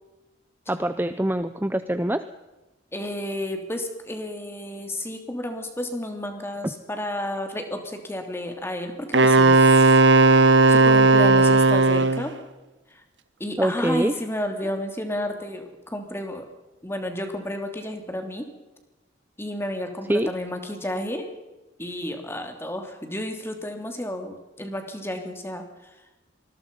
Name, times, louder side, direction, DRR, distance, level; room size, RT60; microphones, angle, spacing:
voice 1, 0.7-2.2 13.6-14.1 20.1-20.3, right 1 dB, 10° right, 11 dB, 0.7 m, -24 dB
voice 2, 2.9-10.0 10.7-12.3 12.9-13.0 13.4-16.5 16.8-18.5 19.4-21.3 21.8-26.0, left 1 dB, 15° left, 5 dB, 3.1 m, -32 dB
Wind instrument woodwind instrument, 9.1-12.3, right 3 dB, 65° right, 1.5 m, -15 dB
26.0 x 20.5 x 5.5 m, 1.1 s
head